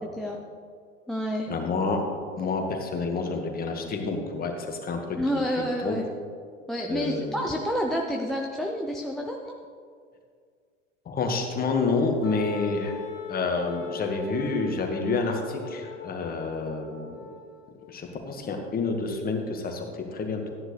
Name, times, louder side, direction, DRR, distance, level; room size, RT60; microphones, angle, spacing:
voice 1, 0.0-0.4 1.1-1.5 5.2-6.1 6.7-9.6, equal, ahead, 1 dB, 0.6 m, -29 dB
voice 2, 1.5-2.0 2.4-5.2 5.6-6.0 6.9-7.3 11.1-12.9 13.3-17.2 17.9-19.8 20.1-20.5, left 4 dB, 25° left, 3 dB, 1.7 m, -28 dB
Wind instrument woodwind instrument, 12.2-17.9, left 6 dB, 75° left, 1.4 m, -40 dB
14.0 x 10.0 x 3.3 m, 2.1 s
figure-of-eight pair, 85°, 37 cm